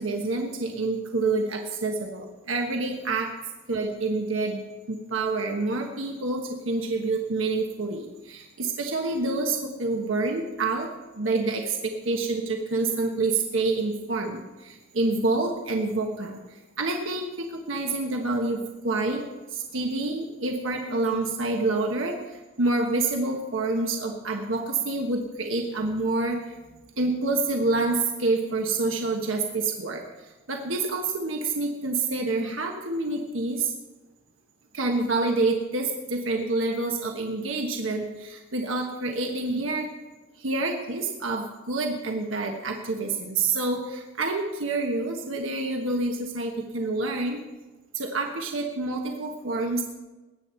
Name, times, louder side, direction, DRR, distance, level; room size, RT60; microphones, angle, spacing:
voice 1, 0.0-3.3 3.7-10.9 11.2-19.2 19.5-26.5 27.0-33.7 34.7-39.9 40.4-47.4 47.9-49.8, right 3 dB, 85° right, 2 dB, 1.3 m, -27 dB
20.5 x 9.5 x 4.4 m, 1.2 s
head